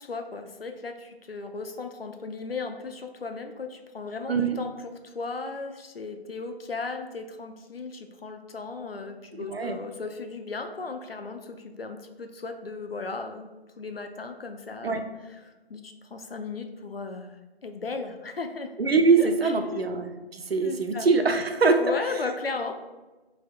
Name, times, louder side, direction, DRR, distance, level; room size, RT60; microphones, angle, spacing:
voice 1, 0.0-4.7 5.0-13.5 13.8-15.0 15.4-18.7 19.2-19.8 20.6-21.1 21.8-22.7, left 4 dB, 65° left, 6 dB, 0.5 m, -36 dB
voice 2, 9.3-9.8 14.8-15.0 18.8-21.8, right 4 dB, 65° right, 6 dB, 0.5 m, -23 dB
4.2 x 3.3 x 2.3 m, 1.2 s
figure-of-eight pair, 170°, 32 cm